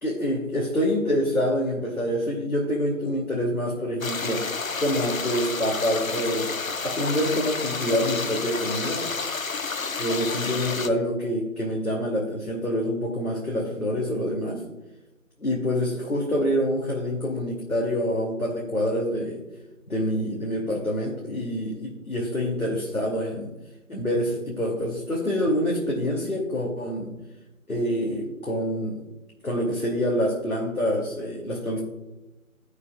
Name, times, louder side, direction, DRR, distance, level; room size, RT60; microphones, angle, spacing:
voice 1, 0.0-4.5 4.8-6.5 6.8-9.1 10.0-14.6 15.4-19.4 19.9-23.5 23.9-27.1 27.7-29.0 29.4-31.8, equal, 90° left, -2 dB, 2.8 m, -26 dB
sound 1, 4.0-10.9, left 4 dB, 70° left, 0.8 m, -30 dB
17.5 x 8.4 x 2.4 m, 1.1 s
figure-of-eight pair, 175°, 42 cm